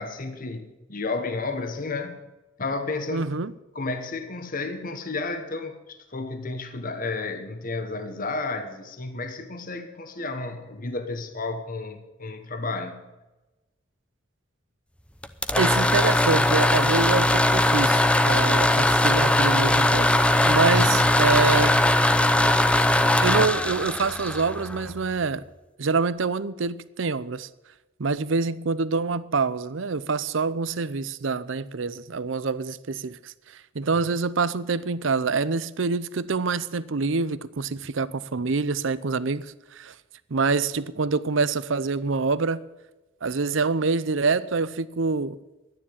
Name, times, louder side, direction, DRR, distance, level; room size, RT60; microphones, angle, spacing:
voice 1, 0.0-2.2 2.6-3.3 3.7-13.0 20.7-21.0, left 3 dB, 45° left, 1.3 m, -32 dB
voice 2, 3.1-3.5 15.6-20.1 20.4-21.8 23.2-25.4 25.8-27.5 28.0-39.9 40.3-42.6 43.2-45.4, right 4 dB, 80° right, 0.7 m, -26 dB
sound 1, 15.2-25.0, left 1 dB, 5° left, 0.7 m, -20 dB
12.5 x 10.0 x 8.6 m
head